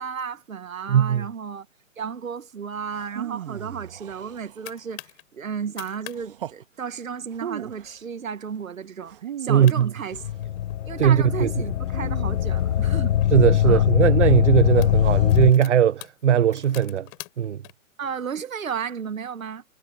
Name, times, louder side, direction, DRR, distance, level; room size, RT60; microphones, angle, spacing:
voice 1, 0.0-1.7 2.0-10.2 10.9-13.1 13.6-13.8 18.0-19.6, right 6 dB, 75° right, 1.7 m, -33 dB
voice 2, 0.9-1.3 9.5-9.9 11.0-11.5 13.3-17.1 17.4-17.6, right 9 dB, 55° right, 1.0 m, -19 dB
sound 1, 2.9-4.9 6.1-6.6 7.3-8.0 9.0-10.4 11.9-13.1 14.7-15.4, right 10 dB, 40° right, 1.8 m, -38 dB
sound 2, 4.1-5.2 5.6-6.2 6.5-6.6 6.9-7.3 7.8-8.0 8.5-8.6 9.3-9.4 9.6-10.8 11.4-13.3 14.0-14.2 14.6-17.7, left 38 dB, 25° left, 7.7 m, -45 dB
sound 3, 10.1-15.5, left 11 dB, 65° left, 0.5 m, -21 dB
hypercardioid pair, 155°, 41 cm